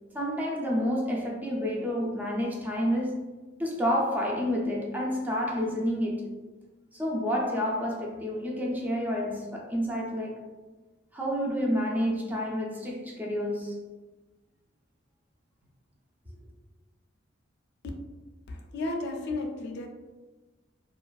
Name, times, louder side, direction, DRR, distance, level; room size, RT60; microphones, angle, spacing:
voice 1, 0.1-3.3 3.6-6.3 6.9-10.4 11.1-13.8, equal, 10° right, -2 dB, 0.4 m, -29 dB
voice 2, 18.5-19.9, left 2 dB, 60° left, 3 dB, 0.4 m, -33 dB
2.4 x 2.3 x 2.2 m, 1.2 s
head